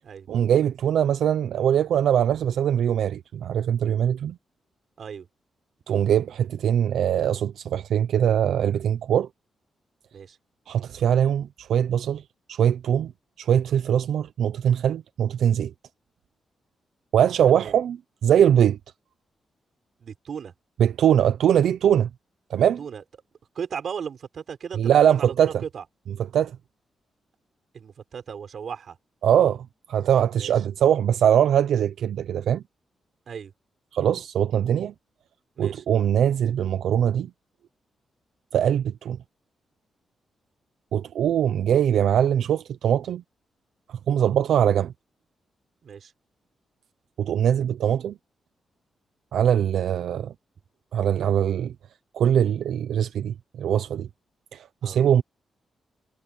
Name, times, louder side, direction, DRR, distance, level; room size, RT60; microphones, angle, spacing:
voice 1, 0.3-4.4 5.9-9.3 10.7-12.2 12.5-13.1 13.4-15.7 17.1-18.8 20.8-22.1 22.5-22.8 24.8-25.5 26.3-26.6 29.2-32.6 33.9-34.9 35.6-37.3 38.5-39.2 40.9-43.2 43.9-44.9 47.2-48.2 49.3-50.3 50.9-51.7 52.1-54.1 54.5-55.2, right 9 dB, 90° right, 0.6 m, -22 dB
voice 2, 20.0-20.5 22.8-23.0 23.5-25.8 27.7-29.0 30.4-30.5 33.3-33.5 35.6-35.8 44.1-44.4 45.8-46.1 54.8-55.0, right 7 dB, 55° right, 5.1 m, -36 dB
wide cardioid pair, 150°, 0 cm